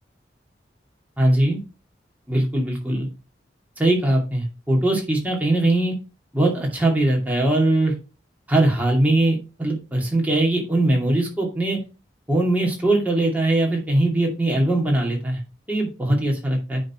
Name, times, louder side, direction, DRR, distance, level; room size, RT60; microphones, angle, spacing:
voice 1, 1.2-1.6 2.3-3.1 3.8-5.9 6.3-7.9 8.5-11.8 12.3-15.4 15.7-16.8, right 1 dB, 10° right, -2 dB, 2.5 m, -21 dB
10.0 x 4.1 x 4.3 m, 0.30 s
head